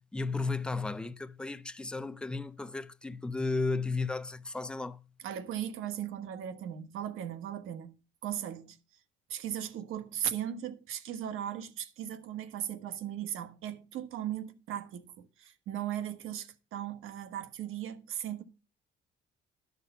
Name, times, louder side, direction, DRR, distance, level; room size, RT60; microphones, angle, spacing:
voice 1, 0.0-5.0, left 3 dB, 5° left, 0.4 m, -34 dB
voice 2, 5.2-8.8 9.3-18.4, right 10 dB, 75° right, 1.4 m, -37 dB
11.5 x 6.7 x 5.5 m
cardioid pair, 160°, 21 cm